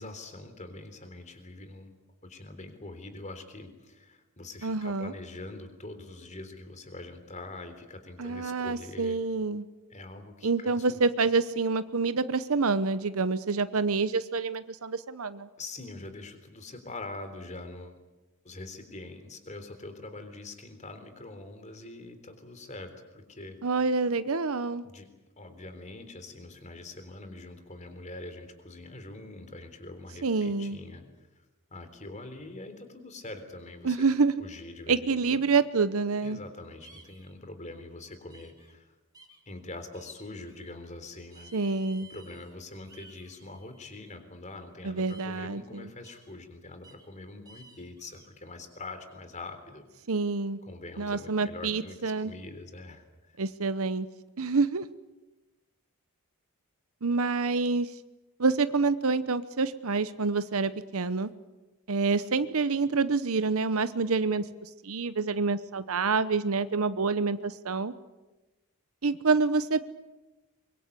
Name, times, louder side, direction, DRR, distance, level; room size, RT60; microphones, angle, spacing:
voice 1, 0.0-1.9 2.2-9.2 9.9-11.0 15.6-18.0 18.4-23.6 24.8-25.1 25.4-31.5 31.7-34.1 34.4-35.5 36.2-38.9 39.5-41.5 42.1-49.9 50.7-53.4, left 2 dB, 30° left, 8 dB, 3.7 m, -44 dB
voice 2, 4.6-5.1 8.2-9.6 10.4-15.5 23.6-24.8 30.2-30.8 33.8-34.3 34.9-36.4 41.5-42.1 44.8-45.8 50.1-50.6 51.0-52.3 53.4-54.1 54.4-54.8 57.0-57.9 58.4-61.3 61.9-67.9 69.0-69.9, right 4 dB, 70° right, 13 dB, 0.9 m, -27 dB
sound 1, 36.8-37.3 38.3-38.7 39.1-39.4 39.9-40.7 41.3-42.5 42.8-44.1 45.1-45.5 46.0-46.3 46.8-47.1 47.4-48.3, right 2 dB, 15° right, 3.7 m, -55 dB
24.5 x 23.5 x 8.4 m, 1.1 s
head